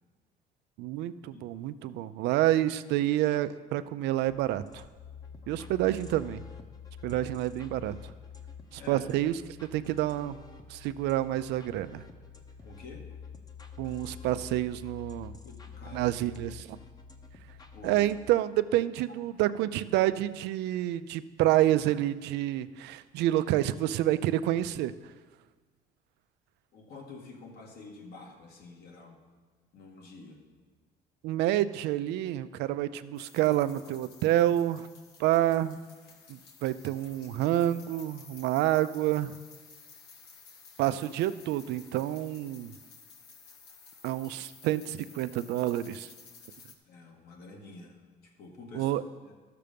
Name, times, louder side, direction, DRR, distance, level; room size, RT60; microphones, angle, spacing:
voice 1, 0.8-4.8 5.5-6.4 7.0-7.9 8.7-10.4 10.7-12.0 13.8-15.3 15.9-16.8 17.8-24.9 31.2-34.9 35.2-35.8 36.3-39.4 40.8-42.7 44.0-46.1 48.7-49.0, right 14 dB, 85° right, 13 dB, 0.5 m, -28 dB
sound 1, 4.2-18.2, left 6 dB, 25° left, 0.9 m, -47 dB
voice 2, 8.8-9.1 12.6-13.2 15.4-16.1 17.6-18.1 19.1-19.2 26.7-29.2 29.7-30.4 46.9-48.9 49.2-49.3, left 3 dB, 65° left, 1 dB, 2.0 m, -49 dB
sound 2, 33.2-46.8, left 5 dB, 85° left, 1.2 m, -54 dB
12.5 x 6.7 x 5.2 m, 1.4 s
cardioid pair, 110°, 17 cm